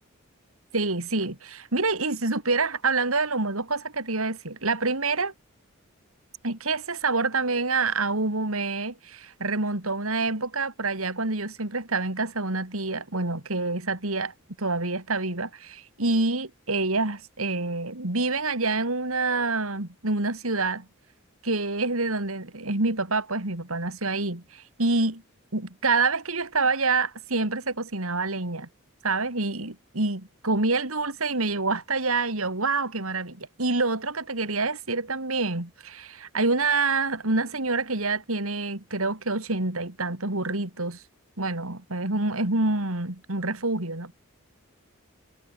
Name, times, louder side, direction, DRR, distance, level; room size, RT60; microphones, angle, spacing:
voice 1, 0.7-5.3 6.4-20.9 21.4-25.2 25.5-28.7 29.0-41.0 41.4-44.1, right 3 dB, 80° right, 3.3 m, -27 dB
head